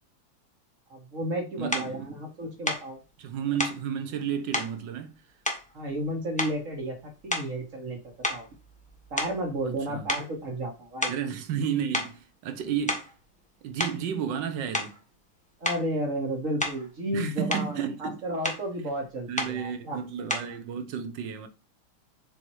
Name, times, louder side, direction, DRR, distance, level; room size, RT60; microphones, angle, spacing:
voice 1, 0.9-3.0 5.7-7.0 7.2-8.0 8.3-8.5 9.1-11.1 15.6-20.0, right 1 dB, 40° right, 1.4 m, -32 dB
voice 2, 1.6-2.1 3.2-5.2 9.6-10.1 11.1-13.0 13.6-15.0 17.1-18.2 19.3-21.5, right 8 dB, 65° right, 1.3 m, -32 dB
sound 1, 1.7-1.9 2.6-2.9 3.6-3.8 4.5-4.7 5.4-6.1 6.4-6.8 7.3-7.6 8.2-9.8 10.1-10.3 11.0-11.3 11.9-12.2 12.7-13.2 13.8-14.0 14.7-15.0 15.6-15.9 16.6-16.9 17.3-17.7 18.4-18.7 19.4-19.6 20.3-20.6, left 1 dB, 10° left, 0.3 m, -31 dB
7.0 x 2.9 x 4.6 m
omnidirectional pair, 2.4 m